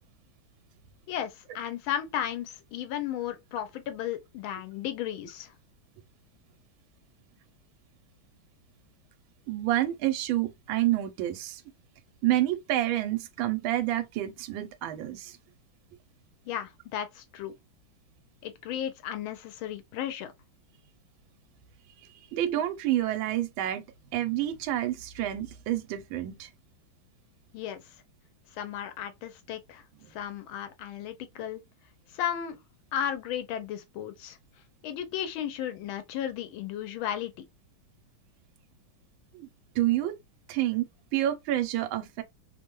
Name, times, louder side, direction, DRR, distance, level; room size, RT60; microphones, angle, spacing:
voice 1, 1.1-5.5 16.5-17.5 18.4-20.3 27.5-27.8 28.6-29.8 30.1-31.6 32.1-32.6 32.9-34.4 34.8-37.5, left 10 dB, 85° left, 1.5 m, -34 dB
voice 2, 9.5-11.6 12.2-15.4 22.0-23.9 24.1-26.5 39.3-39.5 39.7-40.1 40.5-42.2, right 13 dB, 80° right, 1.3 m, -28 dB
3.3 x 2.1 x 2.9 m
omnidirectional pair, 2.2 m